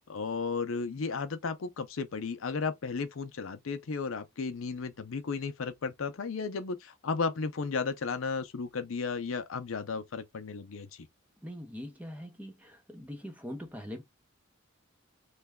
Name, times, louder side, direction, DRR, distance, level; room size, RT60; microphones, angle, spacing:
voice 1, 0.1-10.9, left 4 dB, 75° left, 0.5 m, -34 dB
voice 2, 11.4-14.0, equal, 5° right, 0.7 m, -42 dB
3.2 x 2.3 x 3.4 m
head